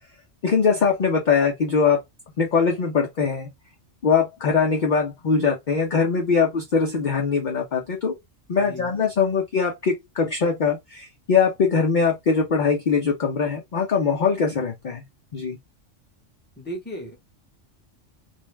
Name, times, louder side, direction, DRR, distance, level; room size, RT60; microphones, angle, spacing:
voice 1, 0.4-2.0 2.4-3.5 4.0-8.1 8.5-15.0 15.3-15.6, left 5 dB, 50° left, 0.6 m, -22 dB
voice 2, 8.6-9.0 16.6-17.2, equal, 10° left, 0.8 m, -35 dB
2.5 x 2.1 x 3.1 m
omnidirectional pair, 1.3 m